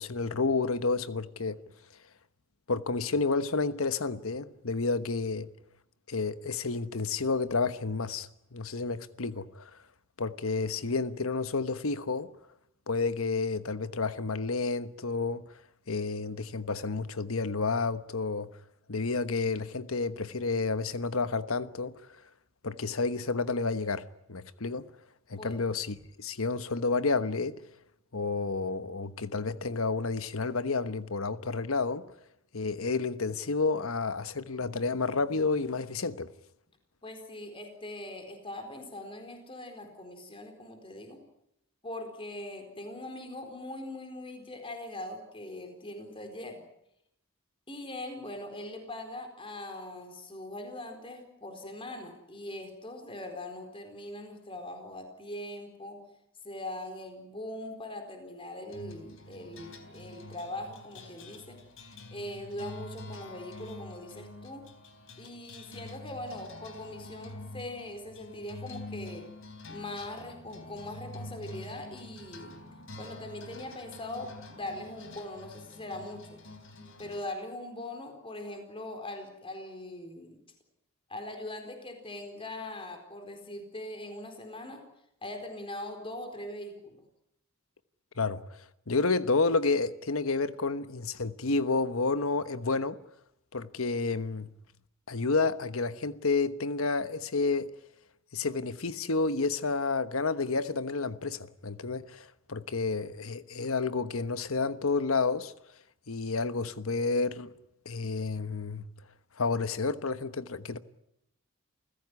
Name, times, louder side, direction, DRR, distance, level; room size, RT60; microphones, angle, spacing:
voice 1, 0.0-1.6 2.7-5.5 6.1-9.7 10.2-12.3 12.9-15.4 15.9-18.5 18.9-21.9 22.6-24.9 25.3-27.5 28.1-32.1 32.5-36.3 88.2-88.4 88.9-93.0 93.5-94.5 95.1-97.7 98.3-105.5 106.1-107.5 107.8-108.9 109.4-110.8, left 4 dB, 85° left, 1.2 m, -30 dB
voice 2, 37.0-41.2 41.8-46.6 47.7-56.0 56.4-61.6 62.1-64.7 65.2-69.3 69.7-72.6 73.0-76.4 77.0-80.4 81.1-84.8 85.2-87.0, left 1 dB, 25° left, 4.3 m, -41 dB
sound 1, 58.7-77.2, left 2 dB, 65° left, 3.7 m, -47 dB
29.0 x 16.0 x 9.7 m
head